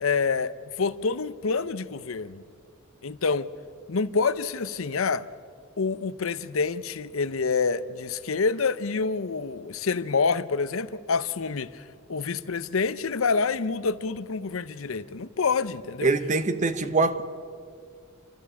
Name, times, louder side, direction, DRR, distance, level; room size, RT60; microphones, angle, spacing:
voice 1, 0.0-2.4 3.0-3.5 3.9-5.2 5.8-11.8 12.1-16.1, left 4 dB, 80° left, 0.7 m, -27 dB
voice 2, 16.0-17.2, right 3 dB, 35° right, 1.0 m, -23 dB
29.5 x 12.5 x 8.3 m
head